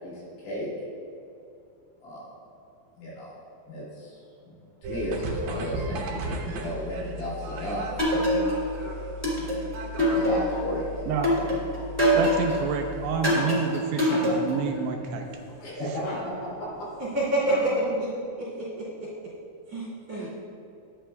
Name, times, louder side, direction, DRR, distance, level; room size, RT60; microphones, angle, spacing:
voice 1, 0.0-0.7 2.0-2.3 3.0-3.4 3.7-4.2 4.5-4.6 4.8-8.3 8.9-9.4 10.1-11.1 15.6-16.9 20.1-20.3, equal, 65° left, -7 dB, 4.8 m, -35 dB
sound 1, 4.8-13.2, right 1 dB, 70° right, 2.6 m, -36 dB
sound 2, 8.0-8.7 9.2-10.7 11.2-12.6 13.2-14.7, equal, 5° left, 1.3 m, -24 dB
voice 2, 12.2-15.3, right 6 dB, 85° right, 3 dB, 2.5 m, -28 dB
sound 3, 12.9-18.0, left 1 dB, 85° left, 5.3 m, -39 dB
voice 3, 17.0-18.1 18.4-19.1 19.7-20.3, right 1 dB, 35° right, -9 dB, 2.8 m, -28 dB
21.0 x 8.6 x 2.3 m, 2.6 s
omnidirectional pair, 5.4 m